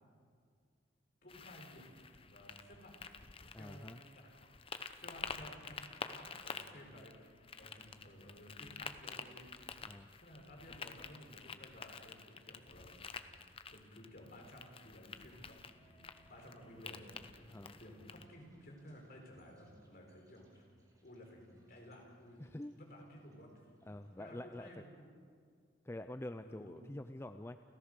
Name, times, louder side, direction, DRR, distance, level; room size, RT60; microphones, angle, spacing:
voice 1, 1.2-2.9 3.5-4.5 5.0-7.3 7.6-9.7 10.2-12.9 13.7-17.3 17.7-20.6 21.0-22.4 22.7-23.5 24.2-25.1 26.3-26.8, equal, 50° left, 1 dB, 4.7 m, -55 dB
sound 1, 1.3-18.2, left 5 dB, 30° left, 0.9 m, -49 dB
voice 2, 3.5-4.0 9.8-10.1 17.5-17.8 22.4-22.7 23.8-24.8 25.8-27.6, left 1 dB, 15° left, 9 dB, 0.4 m, -46 dB
sound 2, 13.4-13.5 13.8-14.2 14.6-14.7 15.5-24.6, right 1 dB, 20° right, 3.4 m, -68 dB
30.0 x 14.5 x 6.7 m, 2.1 s
head